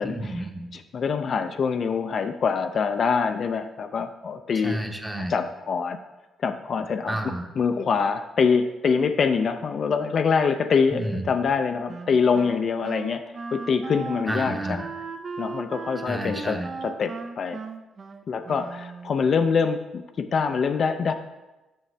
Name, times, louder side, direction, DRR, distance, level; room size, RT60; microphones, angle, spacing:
voice 1, 0.0-0.7 4.5-5.3 7.1-7.5 10.9-11.3 14.3-14.9 16.0-16.7, right 1 dB, 10° right, 4 dB, 0.8 m, -31 dB
voice 2, 0.7-4.8 5.3-6.0 6.4-7.2 7.6-13.2 13.5-14.8 15.4-16.6 16.8-17.6 18.3-21.1, left 5 dB, 50° left, 8 dB, 0.4 m, -24 dB
Wind instrument woodwind instrument, 11.9-19.3, right 4 dB, 45° right, 0.5 m, -37 dB
7.4 x 5.6 x 3.3 m, 1.1 s
cardioid pair, 90°, 0 cm